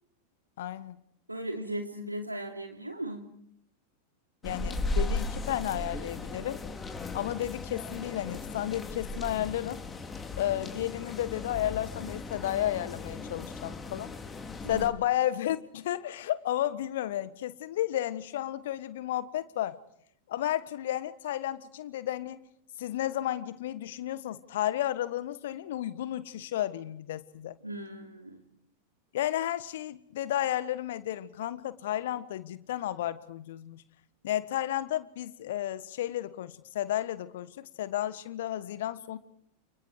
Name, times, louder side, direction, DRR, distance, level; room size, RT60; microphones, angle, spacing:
voice 1, 0.6-1.0 4.4-6.6 7.1-9.8 10.4-14.1 14.7-19.8 20.3-22.4 22.8-27.6 29.1-33.8 34.2-39.2, left 12 dB, 55° left, 15 dB, 1.4 m, -32 dB
voice 2, 1.3-3.3 14.6-14.9 27.6-28.4, right 1 dB, 85° right, 4 dB, 3.0 m, -37 dB
sound 1, 4.4-14.9, left 2 dB, 15° left, 3.5 m, -36 dB
29.5 x 29.5 x 4.7 m, 0.70 s
figure-of-eight pair, 90°, 0 cm